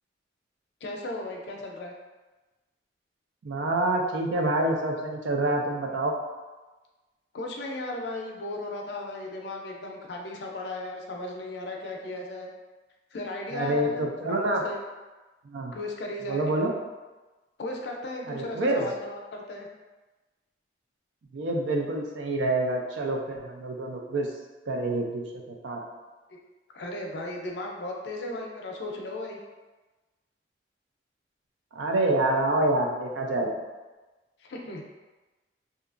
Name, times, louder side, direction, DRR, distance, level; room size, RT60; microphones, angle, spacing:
voice 1, 0.8-1.9 7.3-12.5 13.1-14.0 14.3-14.8 15.7-16.4 17.6-19.7 26.3-26.4 26.7-29.4 34.4-34.8, left 2 dB, 70° left, 1 dB, 0.4 m, -36 dB
voice 2, 3.4-6.1 13.5-14.6 15.4-15.7 16.3-16.7 18.3-18.9 21.3-24.3 24.7-25.8 31.7-33.6, right 2 dB, 90° right, 1 dB, 0.4 m, -27 dB
2.7 x 2.3 x 2.4 m, 1.2 s
head